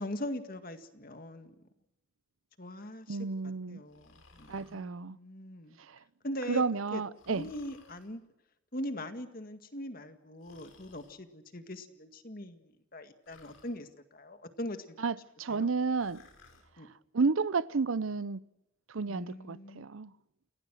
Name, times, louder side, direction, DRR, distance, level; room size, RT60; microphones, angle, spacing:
voice 1, 0.0-1.5 2.6-3.2 3.7-5.8 6.2-6.6 6.9-7.0 7.3-8.2 8.7-15.0 15.5-15.7 16.8-16.9 19.1-19.9, left 1 dB, 45° left, 2.0 m, -41 dB
voice 2, 3.1-3.8 4.5-5.2 5.8-6.0 6.5-7.5 15.0-16.2 17.1-18.4 18.9-20.1, right 4 dB, 80° right, 0.7 m, -31 dB
Breathing, 3.9-4.8 7.2-8.1 10.4-11.2 13.3-13.8 15.9-16.7, left 3 dB, 80° left, 5.8 m, -59 dB
29.5 x 17.5 x 6.2 m
head